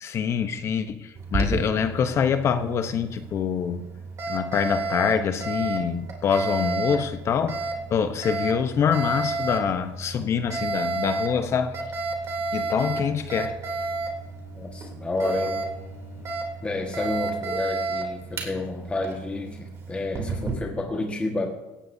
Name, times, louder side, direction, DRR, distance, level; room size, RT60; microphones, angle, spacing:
voice 1, 0.0-3.9 4.3-7.6 7.9-11.8 12.5-13.6, left 7 dB, 45° left, 9 dB, 0.9 m, -25 dB
Alarm, 1.2-20.5, right 3 dB, 45° right, 3.1 m, -31 dB
Bowed string instrument, 13.0-16.6, left 6 dB, 60° left, 5.5 m, -49 dB
voice 2, 14.5-15.7 16.6-21.5, left 2 dB, 20° left, 1 dB, 1.6 m, -30 dB
17.5 x 16.0 x 2.7 m, 1.0 s
cardioid pair, 115°, 7 cm